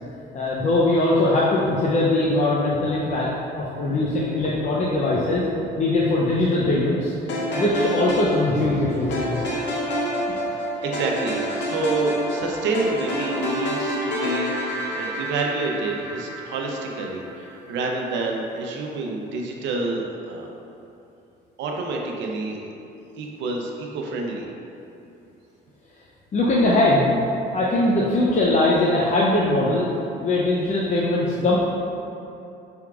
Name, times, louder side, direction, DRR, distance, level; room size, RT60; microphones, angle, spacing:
voice 1, 0.3-5.4 5.8-7.1 7.5-9.4 26.3-27.1 27.5-29.9 30.2-31.6, left 2 dB, 40° left, -6 dB, 0.6 m, -21 dB
sound 1, 7.3-17.5, equal, 70° left, 0.9 m, -28 dB
voice 2, 10.8-20.5 21.6-22.7 23.2-24.5, right 2 dB, 75° right, 0 dB, 0.7 m, -28 dB
5.6 x 3.5 x 2.4 m, 2.8 s
cardioid pair, 85°, 19 cm